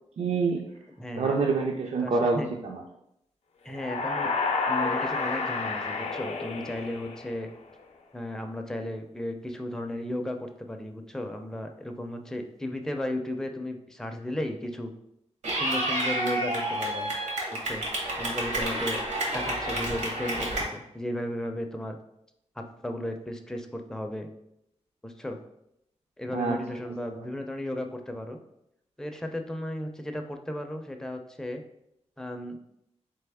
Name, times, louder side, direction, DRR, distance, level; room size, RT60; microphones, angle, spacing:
voice 1, 0.2-0.6 1.2-2.8 26.3-26.6, right 4 dB, 60° right, 1 dB, 0.4 m, -26 dB
voice 2, 1.0-1.4 2.0-2.5 3.6-4.3 4.7-7.5 8.1-14.9 15.5-17.1 17.6-17.8 18.2-19.0 19.3-22.0 22.6-24.3 25.0-25.4 26.2-28.4 29.0-31.6 32.2-32.6, left 1 dB, 5° left, 4 dB, 0.4 m, -35 dB
sound 1, 3.7-7.6, left 4 dB, 65° left, 0.5 m, -30 dB
Clapping / Cheering, 15.4-20.6, right 1 dB, 80° right, 1.1 m, -30 dB
3.7 x 3.4 x 3.4 m, 0.79 s
wide cardioid pair, 115°, 12 cm